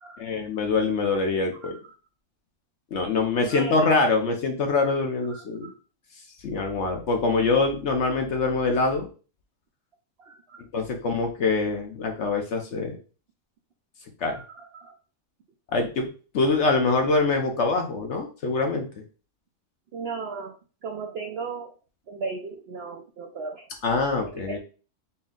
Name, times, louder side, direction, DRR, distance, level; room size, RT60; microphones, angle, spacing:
voice 1, 0.2-1.8 2.9-5.7 6.4-9.1 10.7-13.0 14.2-14.4 15.7-16.1 16.3-18.9 23.8-24.6, left 3 dB, 60° left, 3 dB, 0.9 m, -24 dB
voice 2, 1.6-1.9 3.4-4.0 5.3-5.7 10.2-10.6 14.3-15.0 17.7-17.8 19.9-20.5 20.8-21.7 22.1-23.7 24.3-24.6, right 4 dB, 70° right, 3 dB, 0.6 m, -36 dB
4.2 x 2.1 x 3.6 m, 0.35 s
omnidirectional pair, 1.6 m